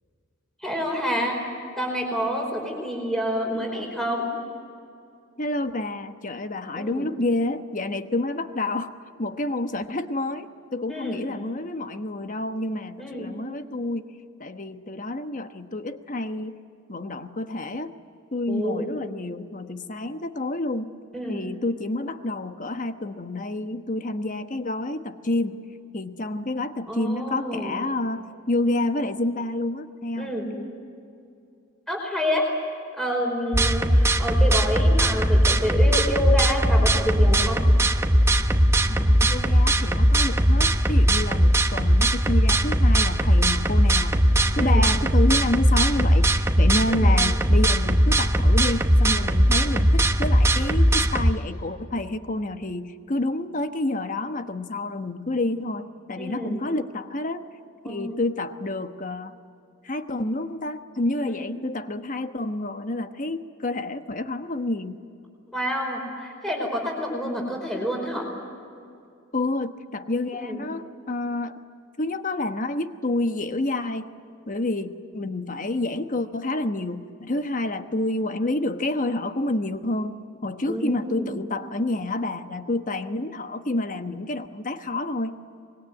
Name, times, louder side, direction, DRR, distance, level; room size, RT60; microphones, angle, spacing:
voice 1, 0.6-1.4 1.8-4.3 6.8-7.1 10.9-11.2 13.0-13.3 18.5-19.0 21.1-21.4 26.9-27.8 30.2-30.5 31.9-32.5 33.0-37.6 44.6-44.8 46.9-47.1 56.2-56.6 57.8-58.2 61.3-61.5 65.5-68.3 70.3-70.6 80.7-81.3, equal, ahead, -1 dB, 4.8 m, -28 dB
voice 2, 5.4-16.6 16.9-17.9 18.3-20.9 21.3-25.7 25.9-30.3 38.9-44.2 44.6-57.4 57.8-59.3 59.8-65.0 69.3-71.6 72.0-74.1 74.5-85.6, left 2 dB, 40° left, 9 dB, 1.2 m, -29 dB
sound 1, 33.5-51.3, equal, 15° right, 1.1 m, -19 dB
25.0 x 21.5 x 9.5 m, 2.5 s
head